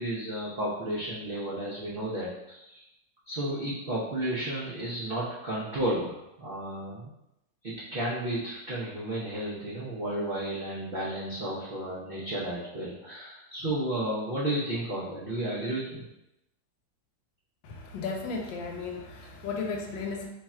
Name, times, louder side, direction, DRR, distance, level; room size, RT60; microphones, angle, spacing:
voice 1, 0.0-2.8 3.3-7.1 7.6-16.1, right 1 dB, 75° right, -8 dB, 0.5 m, -32 dB
voice 2, 17.6-20.3, left 4 dB, 80° left, 2 dB, 1.3 m, -35 dB
3.2 x 2.4 x 4.2 m, 0.86 s
omnidirectional pair, 2.1 m